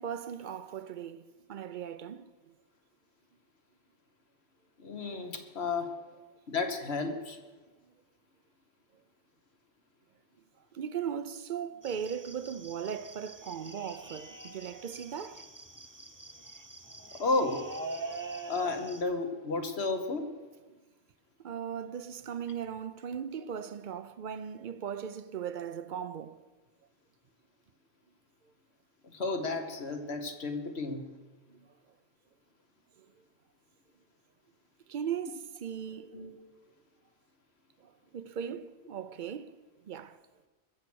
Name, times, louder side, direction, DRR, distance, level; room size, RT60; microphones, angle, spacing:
voice 1, 0.0-2.5 10.7-15.5 21.4-26.4 31.5-31.7 34.9-36.2 37.8-40.2, right 8 dB, 55° right, 0.6 m, -38 dB
voice 2, 4.8-6.0 6.5-7.4 17.2-17.7 18.5-20.3 29.1-31.1 36.0-36.3, left 3 dB, 70° left, 1.6 m, -32 dB
sound 1, 11.8-19.0, right 2 dB, 20° right, 0.9 m, -44 dB
21.5 x 7.2 x 6.2 m
omnidirectional pair, 1.1 m